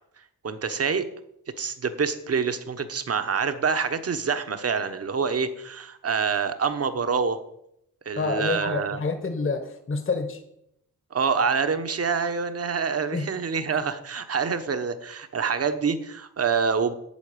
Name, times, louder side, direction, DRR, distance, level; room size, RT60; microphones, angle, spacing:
voice 1, 0.4-1.1 1.6-7.4 8.0-9.0 11.1-16.9, right 5 dB, 40° right, 9 dB, 1.1 m, -26 dB
voice 2, 8.2-10.4 13.1-13.2, left 4 dB, 35° left, 7 dB, 1.4 m, -28 dB
8.4 x 8.4 x 8.5 m, 0.77 s
wide cardioid pair, 130°, 36 cm